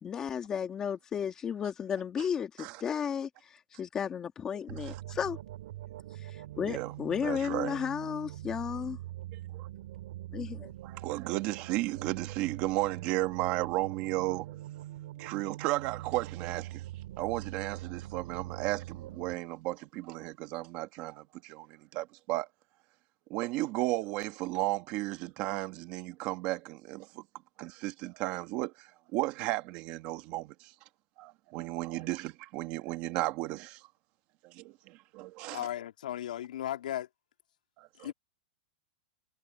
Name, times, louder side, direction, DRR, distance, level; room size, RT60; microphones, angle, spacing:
voice 1, 0.0-3.3 3.8-5.4 6.2-6.3 6.6-9.0 10.3-10.7, left 7 dB, 15° left, 1.9 m, -33 dB
sound 1, 4.7-19.3, right 14 dB, 60° right, 3.7 m, -43 dB
voice 2, 7.2-7.8 9.5-9.7 10.8-14.5 15.2-16.8 17.2-22.5 23.3-27.2 27.6-30.7 31.2-33.8 34.4-35.6 37.8-38.1, right 19 dB, 30° right, 1.5 m, -34 dB
voice 3, 35.5-37.1 38.0-38.1, left 11 dB, 90° left, 2.1 m, -36 dB
supercardioid pair, 175°, 4 cm